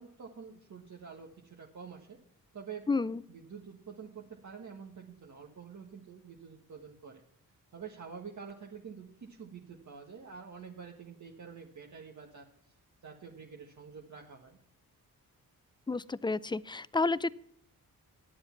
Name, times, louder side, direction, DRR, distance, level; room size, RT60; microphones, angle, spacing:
voice 1, 0.0-2.2 2.5-2.9 3.3-7.2 7.7-12.7 13.0-14.6, right 6 dB, 55° right, -1 dB, 1.5 m, -47 dB
voice 2, 2.9-3.2 15.9-17.3, left 3 dB, 15° left, 17 dB, 0.4 m, -30 dB
11.5 x 8.0 x 5.8 m, 0.68 s
cardioid pair, 80°, 35 cm